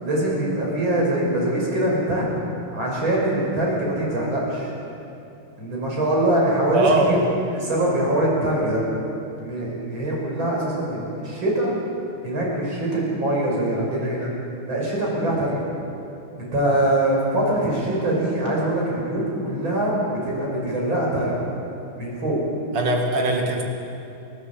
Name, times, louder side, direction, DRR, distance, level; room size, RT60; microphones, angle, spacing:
voice 1, 0.0-2.3 2.7-4.7 5.6-7.2 7.5-8.8 9.4-11.7 12.2-14.3 14.7-15.6 16.4-21.4 22.0-22.4, right 1 dB, 60° right, -4 dB, 6.7 m, -23 dB
voice 2, 6.7-7.3 22.7-23.6, right 2 dB, 85° right, 1 dB, 3.2 m, -21 dB
29.5 x 12.0 x 8.0 m, 2.8 s
omnidirectional pair, 2.4 m